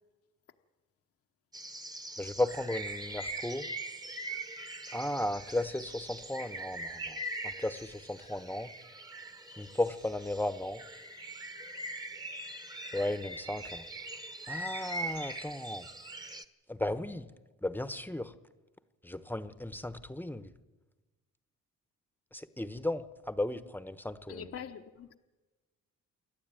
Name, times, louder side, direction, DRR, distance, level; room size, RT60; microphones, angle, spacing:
sound 1, 1.5-16.4, right 1 dB, 15° right, 1.3 m, -42 dB
voice 1, 2.2-3.7 4.9-8.7 9.6-10.8 12.9-13.9 14.5-15.9 16.7-17.3 17.6-18.3 19.0-20.5 22.3-24.5, left 1 dB, 5° left, 12 dB, 1.2 m, -35 dB
voice 2, 24.3-25.2, left 8 dB, 50° left, 6 dB, 1.1 m, -43 dB
28.0 x 12.0 x 9.2 m, 1.2 s
cardioid pair, 90°, 30 cm